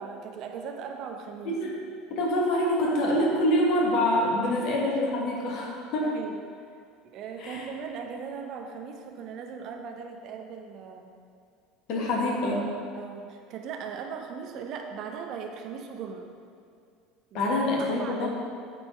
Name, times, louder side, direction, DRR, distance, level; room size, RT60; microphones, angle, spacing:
voice 1, 0.0-1.5 4.6-4.7 6.0-6.4 7.0-11.1 12.9-16.3 17.3-17.4 17.9-18.3, right 6 dB, 50° right, 3 dB, 0.7 m, -38 dB
voice 2, 1.4-1.8 2.1-6.1 7.4-7.6 11.9-12.7 17.3-18.3, left 1 dB, 50° left, -2 dB, 1.7 m, -26 dB
9.0 x 4.3 x 5.6 m, 2.2 s
figure-of-eight pair, 70°, 0 cm